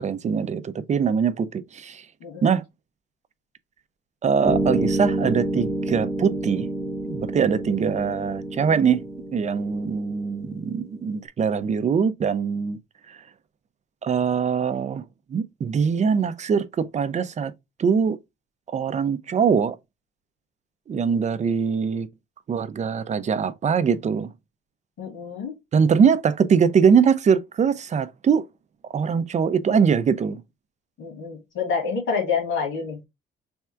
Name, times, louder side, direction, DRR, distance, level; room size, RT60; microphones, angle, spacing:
voice 1, 0.0-2.0 2.4-2.6 4.2-6.7 7.0-9.0 9.3-12.8 14.0-15.0 15.3-17.5 17.8-18.2 18.7-19.8 20.9-22.1 22.5-24.3 25.7-28.4 28.9-30.4, right 6 dB, 35° right, 0.5 m, -22 dB
sound 1, 4.4-11.0, right 1 dB, ahead, 0.9 m, -28 dB
voice 2, 25.0-25.5 31.0-33.1, left 5 dB, 75° left, 1.8 m, -28 dB
3.5 x 2.3 x 4.4 m
cardioid pair, 90°, 20 cm